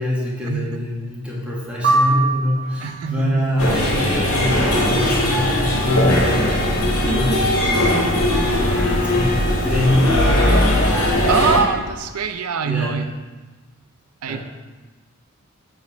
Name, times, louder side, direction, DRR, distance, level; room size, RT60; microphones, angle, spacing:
voice 1, 0.0-8.1 8.8-10.1 12.6-13.0 14.3-14.4, left 1 dB, 5° right, -5 dB, 1.1 m, -24 dB
sound 1, 1.8-3.1, right 2 dB, 45° right, 1.0 m, -21 dB
voice 2, 2.8-3.5 11.3-13.1 14.2-14.4, right 6 dB, 85° right, 9 dB, 0.5 m, -23 dB
sound 2, 3.6-11.6, left 1 dB, 80° left, 1.6 m, -19 dB
7.5 x 3.6 x 4.6 m, 1.3 s
head